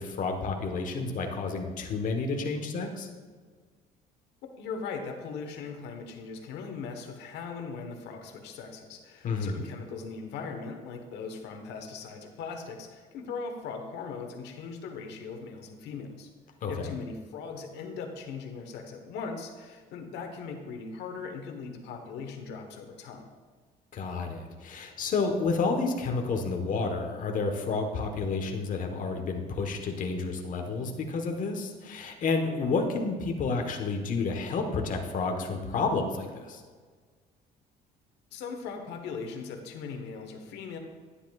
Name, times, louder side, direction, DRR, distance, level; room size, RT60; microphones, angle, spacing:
voice 1, 0.0-3.1 9.2-9.6 16.6-16.9 23.9-36.6, left 4 dB, 50° left, 3 dB, 1.2 m, -30 dB
voice 2, 4.6-16.3 16.7-23.3 38.3-40.8, left 5 dB, 85° left, 4 dB, 1.3 m, -39 dB
10.0 x 10.0 x 2.4 m, 1.5 s
cardioid pair, 110°, 17 cm